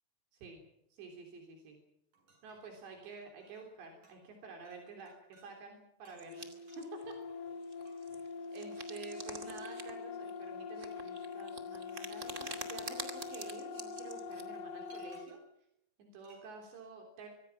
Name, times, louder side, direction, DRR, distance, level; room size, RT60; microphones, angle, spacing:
voice 1, 0.3-0.6 0.9-1.8 2.4-7.1 8.5-15.4 16.0-17.3, right 4 dB, 80° right, 2 dB, 5.6 m, -50 dB
sound 1, 2.1-3.8 4.0-4.3 4.6-5.5 6.0-8.3 9.5-9.6 12.6-15.6 16.2-16.5, right 3 dB, 45° right, 9.1 m, -67 dB
sound 2, 6.1-7.1 7.6-9.9 10.2-14.4 14.8-15.2, right 3 dB, 25° right, 1.6 m, -47 dB
sound 3, 6.3-15.3, left 5 dB, 70° left, 3.0 m, -44 dB
25.0 x 24.0 x 5.9 m, 0.79 s
omnidirectional pair, 4.9 m